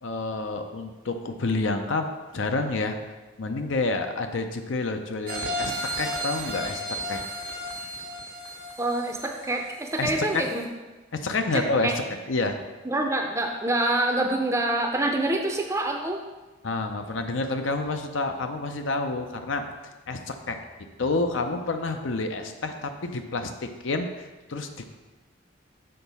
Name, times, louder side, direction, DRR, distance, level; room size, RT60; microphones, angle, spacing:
voice 1, 0.0-3.0 3.4-7.2 10.0-10.4 11.1-11.9 12.3-12.6 16.6-19.6 20.1-20.6 21.0-24.9, left 3 dB, 70° left, 6 dB, 0.6 m, -29 dB
sound 1, 5.3-10.0 10.4-10.5, equal, 80° right, 1.3 m, -33 dB
voice 2, 8.8-10.6 11.5-11.9 12.8-16.2, right 1 dB, 15° right, 2 dB, 0.5 m, -26 dB
6.6 x 4.0 x 5.5 m, 1.2 s
head